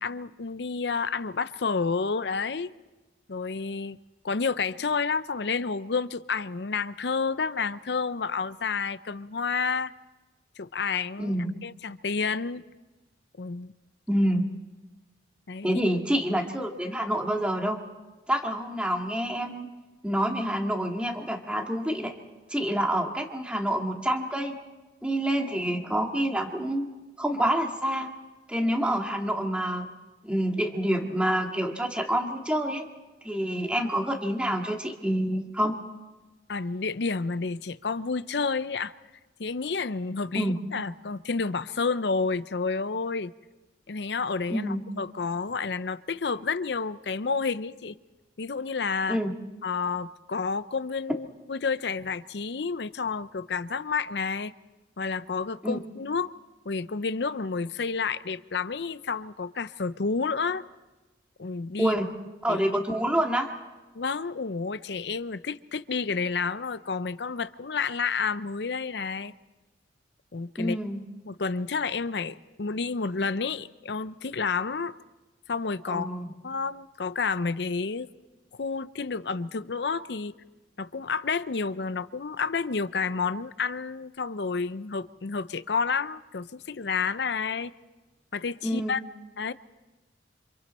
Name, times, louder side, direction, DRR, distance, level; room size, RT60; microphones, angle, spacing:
voice 1, 0.0-2.7 3.3-4.0 4.2-9.9 10.6-11.3 11.6-12.6 13.4-13.7 15.5-15.8 36.5-38.9 39.4-43.3 43.9-48.0 48.4-49.2 49.6-54.5 55.0-56.3 56.7-60.6 61.4-61.9 62.5-62.6 63.9-69.3 70.3-70.8 71.3-74.9 75.5-76.1 76.4-78.1 78.6-80.3 80.8-87.7 88.3-89.0 89.4-89.5, left 4 dB, 70° left, 0.6 m, -30 dB
voice 2, 11.2-11.5 14.1-14.4 15.6-17.8 18.3-19.7 20.0-22.1 22.5-24.5 25.0-26.9 27.2-28.1 28.5-29.9 30.2-32.8 33.2-35.7 40.3-40.6 44.5-44.8 49.1-49.3 55.6-55.8 61.8-62.1 62.4-63.5 70.6-71.0 75.9-76.3 88.6-89.0, right 1 dB, 5° right, 1.9 m, -27 dB
28.5 x 26.5 x 4.3 m
head